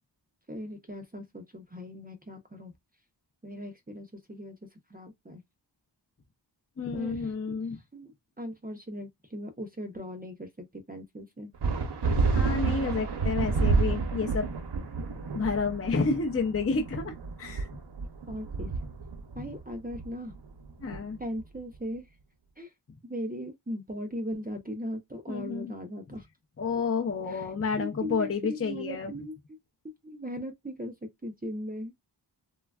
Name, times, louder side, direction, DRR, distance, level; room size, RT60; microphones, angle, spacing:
voice 1, 0.5-2.7 3.4-4.6 4.9-5.4 6.9-7.3 7.9-8.1 8.4-11.5 18.3-18.7 19.4-20.3 21.2-22.0 22.6-22.7 23.0-26.3 27.3-27.5 27.8-29.3 30.0-30.9 31.2-31.9, equal, 20° right, 0.6 m, -38 dB
voice 2, 6.8-7.8 12.3-14.5 15.3-17.7 20.8-21.2 25.3-25.7 26.6-29.1, left 4 dB, 30° left, 0.5 m, -30 dB
sound 1, 11.6-21.6, right 4 dB, 65° right, 0.7 m, -30 dB
3.2 x 2.3 x 2.2 m
wide cardioid pair, 70°, 44 cm